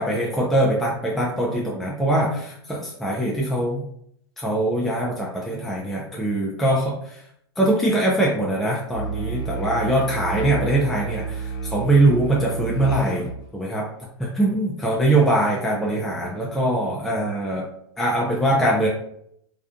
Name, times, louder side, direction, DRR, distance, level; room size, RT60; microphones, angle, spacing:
voice 1, 0.0-3.8 4.4-7.2 7.6-13.9 14.2-17.7 18.0-18.9, right 1 dB, ahead, -4 dB, 0.4 m, -22 dB
Musical instrument, 8.9-13.4, right 4 dB, 55° left, 0.7 m, -30 dB
2.4 x 2.2 x 2.4 m, 0.71 s
hypercardioid pair, 110°, 14 cm